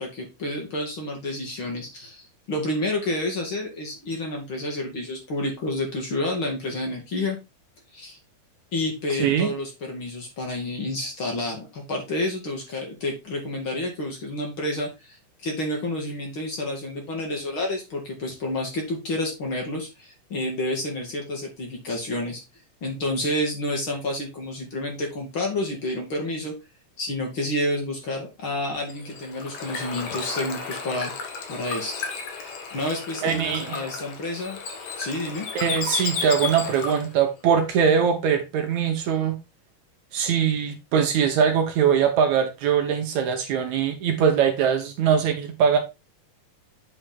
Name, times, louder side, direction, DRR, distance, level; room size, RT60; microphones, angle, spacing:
voice 1, 0.0-7.4 7.9-8.2 8.7-22.4 22.8-26.5 27.0-31.1 31.5-31.9 32.4-34.6 35.0-35.5, left 1 dB, 40° left, 2.6 m, -29 dB
Bird / Water, 28.8-37.2, left 5 dB, 60° left, 2.4 m, -33 dB
voice 2, 33.2-33.8 35.6-39.4 40.1-45.8, right 7 dB, 70° right, 2.1 m, -22 dB
8.9 x 4.9 x 3.6 m
omnidirectional pair, 3.7 m